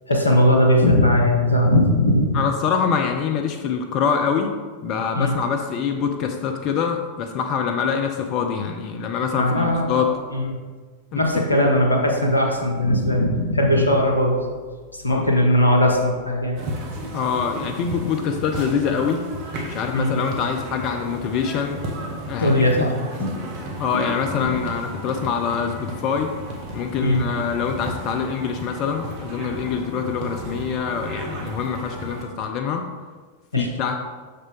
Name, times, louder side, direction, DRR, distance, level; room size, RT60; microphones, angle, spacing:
voice 1, 0.1-2.4 5.1-5.4 9.4-10.5 11.1-14.4 14.9-16.6 19.9-20.2 22.4-23.4 23.9-24.0 24.4-24.5 27.0-27.2 33.5-33.7, left 1 dB, 85° left, 1 dB, 1.1 m, -19 dB
voice 2, 2.3-4.5 4.8-10.1 11.1-11.4 15.1-15.3 17.1-19.2 19.6-21.8 22.3-22.9 23.8-26.3 26.7-32.9 33.6-34.0, left 6 dB, 40° left, 5 dB, 0.5 m, -25 dB
sound 1, 16.6-32.2, right 1 dB, 45° right, 1.3 m, -34 dB
6.6 x 6.5 x 3.5 m, 1.5 s
figure-of-eight pair, 90°, 0 cm